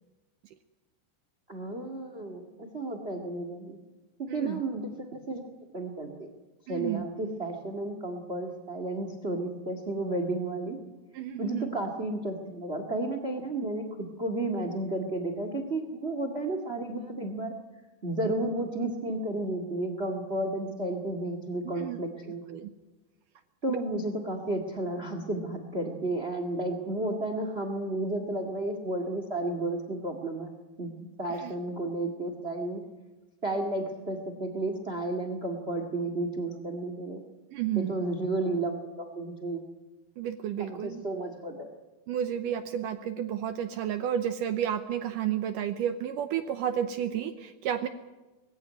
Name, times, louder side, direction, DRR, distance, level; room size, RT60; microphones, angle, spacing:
voice 1, 1.5-3.8 4.2-5.5 5.7-6.3 6.7-10.8 11.4-17.5 18.0-22.4 23.6-30.9 31.2-32.8 33.4-37.2 37.7-39.6 40.6-41.7, right 2 dB, 50° right, 7 dB, 0.7 m, -32 dB
voice 2, 4.3-4.6 6.7-7.1 11.1-11.7 21.8-22.0 22.5-22.7 23.7-23.8 31.4-31.5 37.5-38.0 40.2-41.0 42.1-47.9, right 9 dB, 85° right, 8 dB, 1.9 m, -31 dB
21.0 x 16.0 x 9.4 m, 1.1 s
omnidirectional pair, 4.9 m